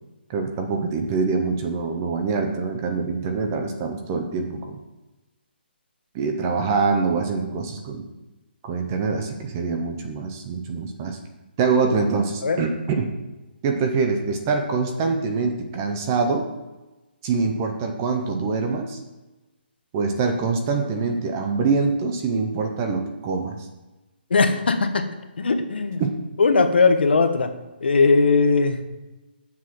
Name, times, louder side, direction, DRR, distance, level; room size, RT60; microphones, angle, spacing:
voice 1, 0.3-4.8 6.1-8.1 8.6-11.2 11.6-13.1 13.6-16.5 17.2-19.0 19.9-23.7 26.0-26.2, right 4 dB, 15° right, 4 dB, 0.5 m, -24 dB
voice 2, 24.3-25.1 25.4-26.0 26.4-27.5 27.8-28.8, left 4 dB, 65° left, 7 dB, 1.1 m, -19 dB
7.4 x 6.2 x 5.9 m, 1.1 s
hypercardioid pair, 180°, 6 cm